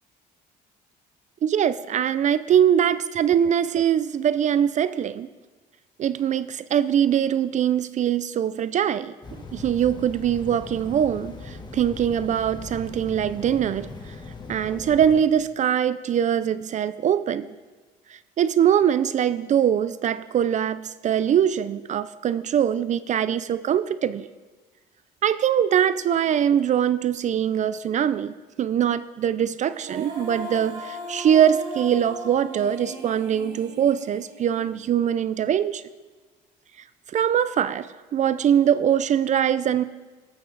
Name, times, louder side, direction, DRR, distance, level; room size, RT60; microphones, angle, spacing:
voice 1, 1.4-5.3 6.0-9.1 9.5-14.2 14.5-17.5 18.1-24.3 25.2-28.3 28.6-35.8 37.1-39.8, right 9 dB, 45° right, 15 dB, 0.4 m, -22 dB
sound 1, 9.2-15.2, left 3 dB, 25° left, 1.4 m, -39 dB
Female singing, 29.7-34.9, equal, 80° right, 3.2 m, -38 dB
15.0 x 12.0 x 4.0 m, 1.4 s
cardioid pair, 110°, 17 cm